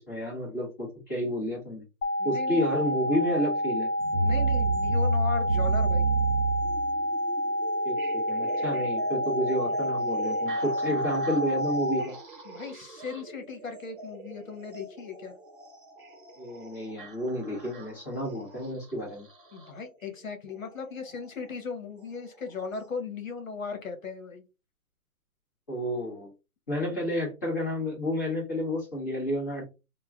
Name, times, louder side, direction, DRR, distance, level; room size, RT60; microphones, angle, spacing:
voice 1, 0.1-1.8 2.2-3.9 7.8-12.1 16.4-19.3 25.7-26.3 26.7-29.6, equal, 15° left, -7 dB, 1.1 m, -30 dB
sound 1, 2.0-12.0, left 1 dB, 85° left, 0.7 m, -29 dB
voice 2, 2.2-2.6 4.2-6.1 12.4-15.3 19.5-24.4, left 5 dB, 65° left, 6 dB, 1.1 m, -37 dB
sound 2, 4.0-19.9 21.1-21.2 22.0-22.1 22.7-22.8, right 3 dB, 40° right, 0.8 m, -33 dB
3.0 x 2.3 x 2.4 m, 0.28 s
hypercardioid pair, 170°, 43 cm